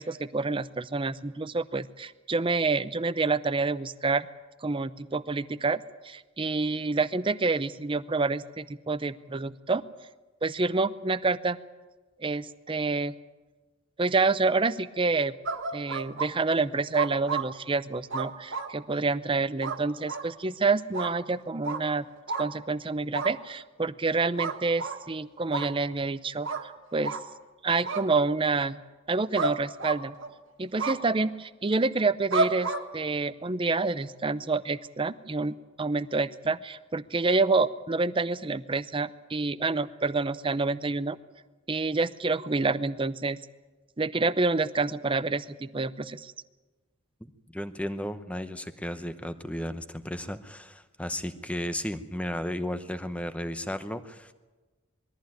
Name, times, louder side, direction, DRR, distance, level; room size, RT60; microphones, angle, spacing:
voice 1, 0.0-4.3 4.6-9.8 10.4-11.6 12.2-13.1 14.0-15.3 15.7-22.1 22.4-27.2 27.6-28.8 29.1-30.1 30.6-41.2 41.7-43.4 44.0-46.3, right 3 dB, 25° right, 15 dB, 0.6 m, -28 dB
sound 1, 15.5-16.3 16.9-17.5 18.1-18.7 19.6-19.8 20.1-20.3 20.9-21.1 21.6-21.8 22.3-22.5 23.1-23.3 24.4-25.0 25.5-25.7 26.4-26.6 27.0-27.2 27.8-28.0 29.4-29.5 29.8-30.3 30.8-31.0 32.3-32.8, right 3 dB, 65° right, 1.8 m, -30 dB
voice 2, 47.2-54.3, equal, 5° left, 10 dB, 0.8 m, -34 dB
21.0 x 14.0 x 9.2 m, 1.2 s
head